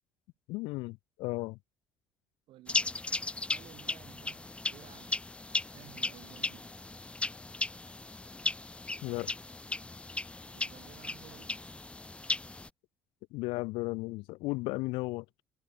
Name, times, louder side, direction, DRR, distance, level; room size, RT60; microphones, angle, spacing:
voice 1, 0.5-1.6 9.0-9.3 13.3-15.4, left 23 dB, 75° left, 0.6 m, -35 dB
voice 2, 2.5-3.0 3.5-5.2 5.7-6.8 10.5-11.7, right 15 dB, 70° right, 1.3 m, -55 dB
sound 1, 2.7-12.7, left 2 dB, 15° left, 0.5 m, -36 dB
supercardioid pair, 80°, 9 cm